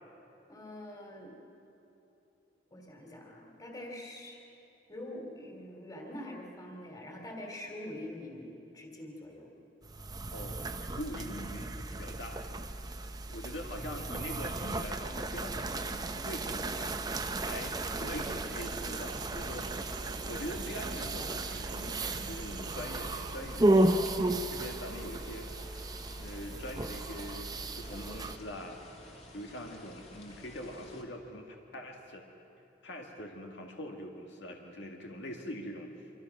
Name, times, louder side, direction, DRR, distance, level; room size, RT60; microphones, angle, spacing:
voice 1, 0.5-1.4 2.7-4.4 4.9-9.5, left 1 dB, 20° left, 1 dB, 3.1 m, -44 dB
sound 1, 9.8-28.4, right 2 dB, 20° right, 0.8 m, -34 dB
voice 2, 10.3-12.5 13.3-19.7 20.3-25.7 26.2-27.5 27.8-28.8 29.3-32.2 32.8-35.9, left 1 dB, 70° left, 1 dB, 2.0 m, -43 dB
sound 2, 18.1-31.0, left 1 dB, 35° left, 2.5 m, -53 dB
sound 3, 18.1-23.3, right 5 dB, 65° right, 0.7 m, -47 dB
26.0 x 25.0 x 6.1 m, 2.9 s
head